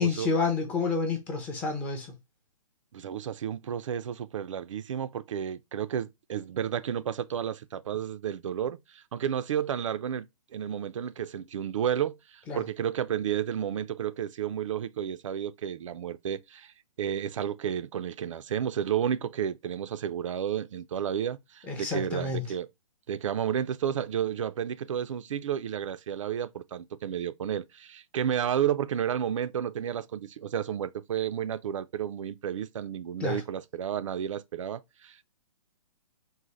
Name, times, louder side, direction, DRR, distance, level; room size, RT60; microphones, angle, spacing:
voice 1, 0.0-2.1 12.5-12.6 21.6-22.4 33.2-33.4, left 4 dB, 10° left, 0.4 m, -29 dB
voice 2, 2.9-10.3 10.5-16.7 17.0-22.7 23.1-35.2, right 9 dB, 65° right, 0.4 m, -31 dB
3.9 x 2.0 x 3.0 m
hypercardioid pair, 160°, 18 cm